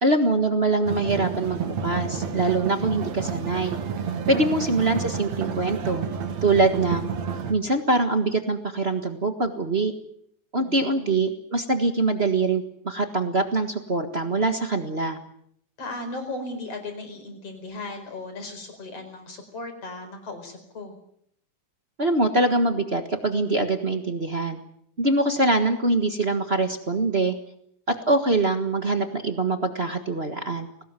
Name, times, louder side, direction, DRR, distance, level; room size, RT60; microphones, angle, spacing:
voice 1, 0.0-3.8 4.3-6.1 6.4-7.1 7.5-9.9 10.5-15.2 22.0-24.6 25.0-27.3 27.9-30.7, right 2 dB, 35° right, 7 dB, 1.0 m, -23 dB
sound 1, 0.9-7.5, right 6 dB, 60° right, 3.0 m, -30 dB
voice 2, 4.3-4.6 10.6-11.3 15.8-21.0, left 2 dB, 50° left, 6 dB, 5.8 m, -37 dB
22.5 x 19.0 x 9.1 m, 0.70 s
omnidirectional pair, 3.6 m